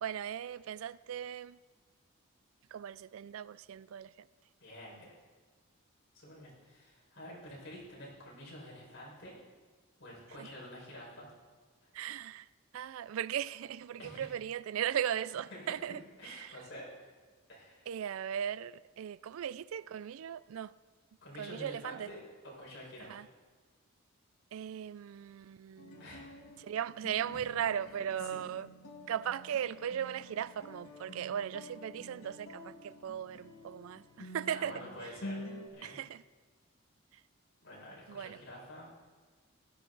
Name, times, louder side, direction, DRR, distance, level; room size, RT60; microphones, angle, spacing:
voice 1, 0.0-1.6 2.7-4.3 10.4-10.5 11.9-12.5 12.7-16.5 17.9-20.7 21.4-22.1 23.1-23.3 24.5-26.2 26.6-28.7 29.1-34.8 35.8-36.2 38.1-38.4, right 9 dB, 80° right, 0.3 m, -38 dB
voice 2, 4.6-5.2 6.1-9.4 10.0-11.3 14.0-14.4 15.5-16.9 17.5-17.9 21.2-23.3 26.0-26.4 27.3-27.5 28.2-28.5 34.5-35.4 35.7-36.0 37.6-38.9, left 1 dB, 60° left, 5.2 m, -49 dB
sound 1, 25.8-35.7, left 1 dB, 85° left, 1.8 m, -49 dB
16.5 x 12.5 x 4.0 m
head